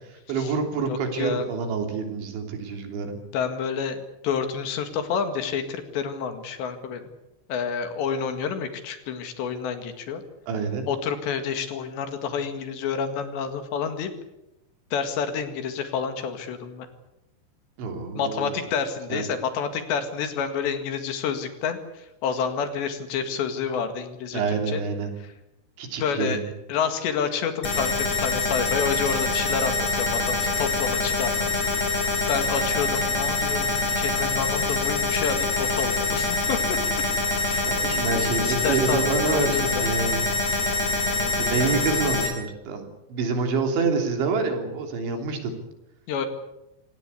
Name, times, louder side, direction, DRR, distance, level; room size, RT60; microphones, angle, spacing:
voice 1, 0.3-3.2 10.5-10.9 17.8-18.6 19.1-19.2 24.3-25.1 25.8-26.5 37.7-40.3 41.4-45.5, right 4 dB, 75° right, 5 dB, 5.6 m, -27 dB
voice 2, 0.9-1.5 3.3-7.1 7.5-10.2 10.9-14.1 14.9-16.9 18.2-24.4 24.7-24.8 26.0-26.4 26.7-31.5 32.3-36.8 37.5-37.7 38.4-39.9 40.5-40.6 41.1-41.7 46.1-46.3, left 6 dB, 70° left, 8 dB, 4.1 m, -29 dB
sound 1, 27.6-42.3, left 3 dB, 35° left, 5.5 m, -25 dB
26.0 x 18.5 x 8.5 m, 0.92 s
omnidirectional pair, 5.4 m